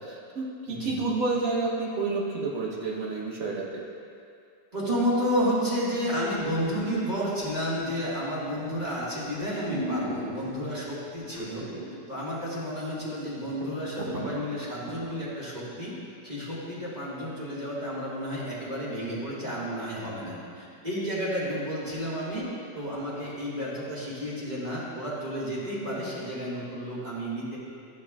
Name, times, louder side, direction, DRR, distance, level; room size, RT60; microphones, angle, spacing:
voice 1, 0.0-3.9, right 3 dB, 55° right, -3 dB, 1.3 m, -30 dB
voice 2, 4.7-11.7 12.1-16.0 16.2-22.5 22.7-27.6, equal, 25° right, -8 dB, 1.8 m, -31 dB
sound 1, 8.5-8.8 9.3-9.4 9.7-10.7 11.3-12.0 12.3-12.4 12.9-13.0 13.2-15.1 15.6-15.7, equal, 40° right, 1.0 m, -35 dB
12.5 x 6.2 x 2.4 m, 2.4 s
omnidirectional pair, 1.8 m